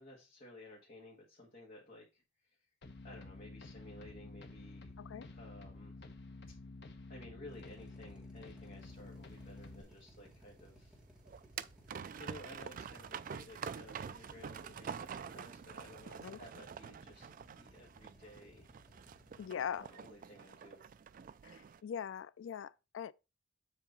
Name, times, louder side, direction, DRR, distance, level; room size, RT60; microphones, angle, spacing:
voice 1, 0.0-2.6 3.0-4.9 5.3-6.0 6.5-6.6 7.1-11.0 12.1-17.3 17.5-18.7 19.7-20.9, left 1 dB, 45° left, 1.5 m, -55 dB
sound 1, 2.8-9.8, left 2 dB, 60° left, 1.0 m, -51 dB
Drill, 7.5-19.4, equal, 5° right, 1.5 m, -61 dB
sound 2, 8.9-21.8, right 7 dB, 45° right, 0.3 m, -47 dB
voice 2, 19.4-19.9 21.4-23.1, left 8 dB, 85° left, 0.3 m, -41 dB
7.4 x 2.9 x 5.2 m
head